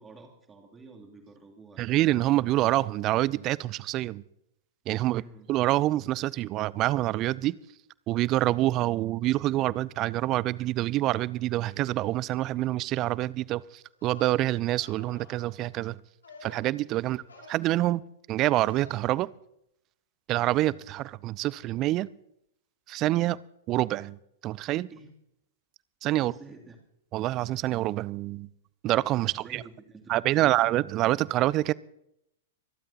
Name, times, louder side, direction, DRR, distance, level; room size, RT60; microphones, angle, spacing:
voice 1, 0.0-2.0 5.0-5.5 17.0-17.2 24.9-25.1 26.2-26.8 29.2-30.6, right 3 dB, 15° right, 2.8 m, -50 dB
voice 2, 1.8-4.2 4.9-5.2 5.5-7.5 8.1-16.0 16.4-17.2 17.5-18.0 18.3-19.3 20.3-22.1 22.9-23.4 23.7-24.9 26.0-26.3 27.1-28.5 28.8-29.6 30.1-31.7, right 16 dB, 35° right, 0.4 m, -26 dB
sound 1, 13.9-14.4 14.8-15.5 16.2-16.8 17.2-17.6 18.6-19.0, left 3 dB, 75° left, 4.3 m, -50 dB
25.5 x 12.0 x 2.9 m
figure-of-eight pair, 100°, 0 cm